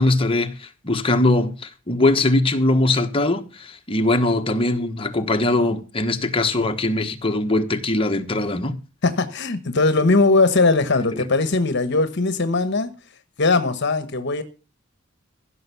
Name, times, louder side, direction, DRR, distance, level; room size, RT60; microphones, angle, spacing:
voice 1, 0.0-8.8, left 2 dB, 25° left, 1.2 m, -21 dB
voice 2, 9.0-12.9 13.4-14.4, left 3 dB, 60° left, 1.1 m, -19 dB
15.5 x 6.2 x 6.9 m
head